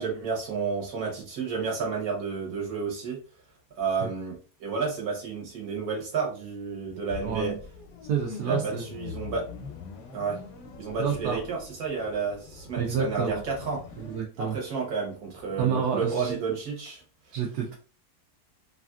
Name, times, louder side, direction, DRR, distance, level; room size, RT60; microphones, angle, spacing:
voice 1, 0.0-3.2 3.8-7.5 8.4-9.5 10.1-10.4 10.8-13.8 14.4-17.0, right 5 dB, 65° right, -1 dB, 1.4 m, -31 dB
sound 1, 7.1-14.2, left 6 dB, 90° left, 1.3 m, -43 dB
voice 2, 7.2-7.6 8.1-8.8 11.0-11.4 12.8-13.4 14.0-14.6 15.6-16.4 17.3-17.7, right 7 dB, 80° right, -1 dB, 1.2 m, -29 dB
3.2 x 2.5 x 2.3 m, 0.37 s
omnidirectional pair, 1.8 m